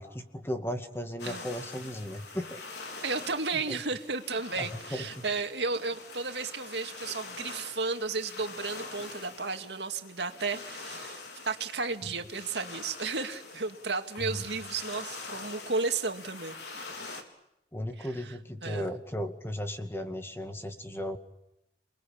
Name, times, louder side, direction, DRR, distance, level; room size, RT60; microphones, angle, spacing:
voice 1, 0.0-2.6 3.5-3.8 4.6-5.2 14.2-14.4 17.7-21.2, equal, 15° left, 6 dB, 2.2 m, -36 dB
sound 1, 1.2-17.2, left 3 dB, 75° left, 4.3 m, -44 dB
voice 2, 3.0-16.9 18.0-18.3 18.6-18.9, right 4 dB, 80° right, 6 dB, 2.2 m, -33 dB
29.5 x 20.5 x 8.7 m, 0.84 s
head